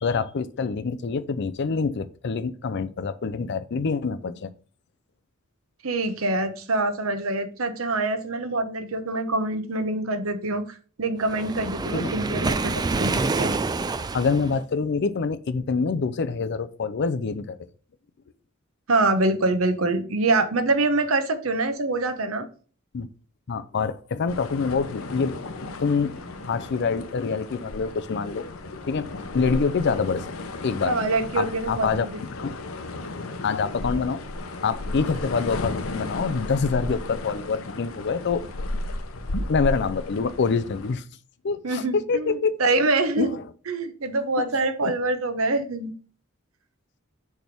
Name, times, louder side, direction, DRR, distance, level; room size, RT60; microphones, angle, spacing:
voice 1, 0.0-4.5 11.9-12.1 14.1-17.6 22.9-23.1 23.5-25.4 25.8-28.5 28.8-30.2 30.6-30.9 31.4-32.1 32.4-32.5 33.0-34.2 34.6-38.4 39.5-41.0 41.4-42.6 43.2-43.4 44.8-44.9, left 5 dB, 55° left, 12 dB, 0.5 m, -26 dB
voice 2, 5.8-10.6 11.0-13.5 18.9-22.5 30.8-32.2 41.6-43.4 43.7-45.9, right 2 dB, 90° right, 8 dB, 1.0 m, -25 dB
Waves surf, 11.3-14.6, right 3 dB, 20° right, 0.3 m, -27 dB
sound 1, 24.3-40.9, left 2 dB, 90° left, 0.8 m, -34 dB
6.4 x 3.5 x 5.9 m, 0.40 s
head